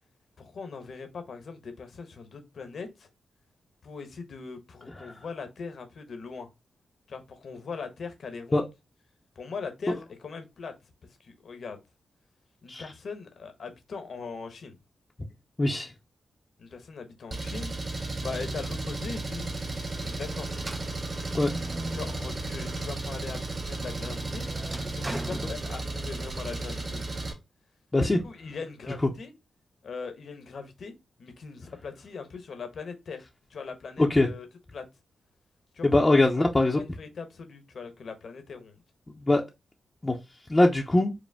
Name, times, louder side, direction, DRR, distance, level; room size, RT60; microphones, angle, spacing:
voice 1, 0.4-3.1 3.8-6.5 7.1-8.7 9.3-10.7 11.2-11.8 12.6-14.8 16.6-17.7 18.2-19.5 20.0-20.5 21.9-24.4 24.8-27.0 28.2-29.3 29.8-30.9 31.2-34.5 34.7-34.8 35.7-36.4 36.8-38.8, left 5 dB, 70° left, 1.0 m, -40 dB
voice 2, 15.6-15.9 21.3-21.5 27.9-28.2 34.0-34.3 35.8-36.8 39.2-39.4 40.0-40.2 40.5-41.1, left 2 dB, 25° left, 0.6 m, -22 dB
Engine, 17.3-27.3, right 2 dB, 50° right, 1.8 m, -34 dB
sound 1, 20.6-23.0 23.4-26.3, right 2 dB, 20° right, 0.4 m, -41 dB
5.1 x 2.1 x 3.4 m
cardioid pair, 60°, 0 cm